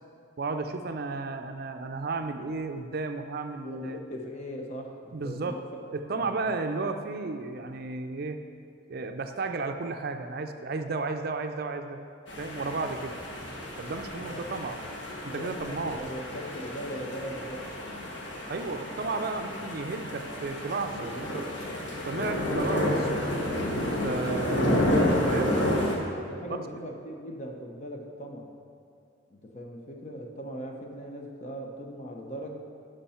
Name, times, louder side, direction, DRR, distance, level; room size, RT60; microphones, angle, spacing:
voice 1, 0.4-4.0 5.1-5.6 5.9-8.4 8.9-12.0 12.4-13.2 13.8-14.8 15.2-16.0 18.5-21.4 22.0-23.1 23.6-24.8 25.2-25.6 26.5-26.6, right 3 dB, 50° right, 6 dB, 0.4 m, -33 dB
voice 2, 3.6-5.0 5.2-5.6 6.2-6.5 14.3-14.5 15.3-17.7 26.3-28.5 29.3-32.5, equal, 40° left, 2 dB, 0.8 m, -39 dB
sound 1, 12.3-25.9, left 1 dB, 65° left, 1.4 m, -30 dB
11.0 x 5.3 x 4.3 m, 2.3 s
head